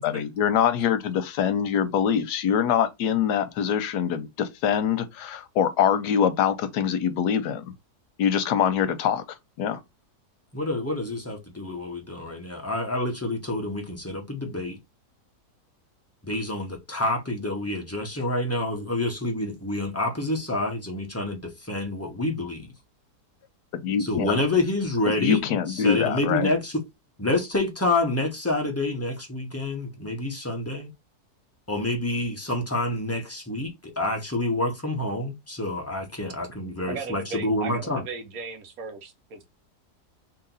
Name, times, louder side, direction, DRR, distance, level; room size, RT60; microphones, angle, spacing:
voice 1, 0.0-7.7 8.2-9.2 9.6-9.8 23.7-24.4 25.2-26.5, left 8 dB, 85° left, 1.3 m, -24 dB
voice 2, 10.5-14.8 16.2-22.7 24.0-25.4 25.7-26.8 27.2-30.9 31.7-38.0, left 2 dB, 15° left, 0.6 m, -28 dB
voice 3, 36.9-39.5, right 4 dB, 65° right, 1.1 m, -36 dB
2.9 x 2.9 x 3.8 m
omnidirectional pair, 1.7 m